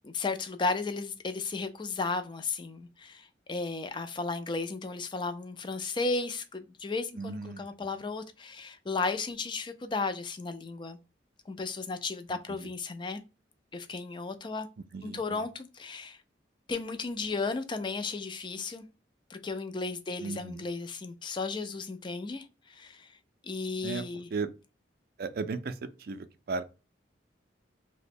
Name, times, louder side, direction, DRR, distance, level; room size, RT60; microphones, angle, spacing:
voice 1, 0.0-11.0 11.5-13.2 13.7-14.7 15.0-16.2 16.7-18.8 19.3-23.1 23.4-24.3, left 3 dB, 25° left, 0.4 m, -34 dB
voice 2, 7.2-7.7 12.5-12.7 14.9-15.4 20.2-20.6 23.8-24.0 24.3-24.5 25.2-26.6, right 4 dB, 55° right, 0.4 m, -36 dB
2.9 x 2.1 x 4.2 m
head